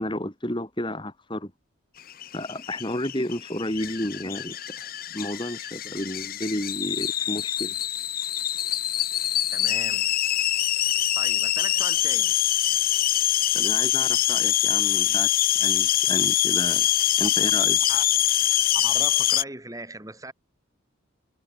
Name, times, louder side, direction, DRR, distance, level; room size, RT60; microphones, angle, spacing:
voice 1, 0.0-1.5 2.3-7.8 13.5-16.9 17.2-17.8, left 1 dB, 25° left, 4.1 m, -32 dB
sound 1, 2.1-19.4, left 12 dB, 45° left, 1.0 m, -24 dB
voice 2, 9.5-10.1 11.1-12.3 17.9-18.0 18.7-20.3, right 2 dB, 15° right, 3.0 m, -39 dB
head